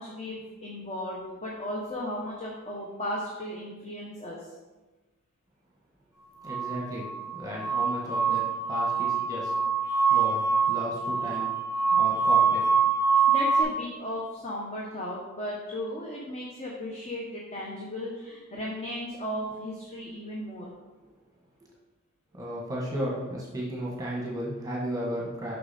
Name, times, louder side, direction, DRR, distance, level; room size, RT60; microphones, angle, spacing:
voice 1, 0.0-4.4 13.3-20.7, left 1 dB, 30° left, -3 dB, 1.0 m, -35 dB
voice 2, 6.4-8.4 8.7-9.5 10.1-11.5 12.0-12.6 13.2-13.3 22.4-25.6, equal, 15° right, -5 dB, 1.4 m, -34 dB
sound 1, 6.5-13.6, right 5 dB, 85° left, 1.8 m, -25 dB
6.8 x 6.0 x 4.2 m, 1.2 s
head